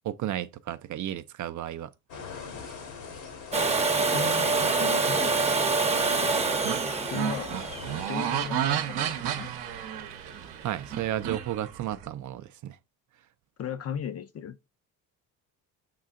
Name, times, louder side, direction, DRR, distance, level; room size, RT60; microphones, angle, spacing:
voice 1, 0.0-1.9 10.3-12.8, right 12 dB, 50° right, 0.4 m, -33 dB
sound 1, 2.1-8.0, left 5 dB, 75° left, 1.4 m, -44 dB
Domestic sounds home sounds, 3.5-9.3 11.3-11.4, right 3 dB, 15° right, 0.7 m, -26 dB
voice 2, 4.1-5.4 7.1-7.6 8.1-9.5 13.6-14.6, left 8 dB, 40° left, 0.5 m, -36 dB
sound 2, 6.0-12.0, right 10 dB, 65° right, 0.8 m, -32 dB
5.5 x 3.8 x 2.4 m
supercardioid pair, 60°, 41 cm